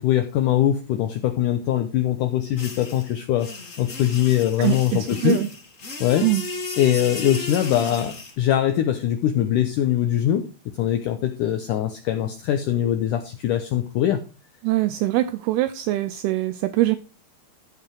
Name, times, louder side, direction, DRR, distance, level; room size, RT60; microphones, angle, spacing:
voice 1, 0.0-3.5 3.8-5.4 6.0-6.3 6.8-10.4 10.8-14.2, left 11 dB, 85° left, 1.8 m, -22 dB
sound 1, 2.6-8.3, left 3 dB, 30° left, 1.6 m, -34 dB
voice 2, 4.6-5.5 6.2-6.4 14.6-17.0, right 16 dB, 80° right, 2.4 m, -23 dB
14.0 x 4.9 x 4.6 m
omnidirectional pair, 4.7 m